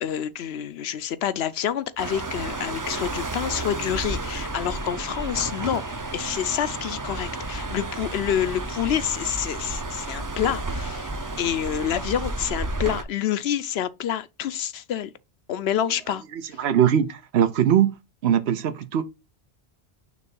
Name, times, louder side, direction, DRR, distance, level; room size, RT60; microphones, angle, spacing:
voice 1, 0.0-5.8 6.1-11.1 11.4-15.1 15.5-16.2 16.5-16.6, left 10 dB, 80° left, 0.9 m, -27 dB
sound 1, 2.0-13.0, right 2 dB, 25° right, 0.5 m, -32 dB
voice 2, 16.3-18.0 18.2-19.0, right 9 dB, 85° right, 1.0 m, -21 dB
6.3 x 3.3 x 5.4 m
omnidirectional pair, 1.1 m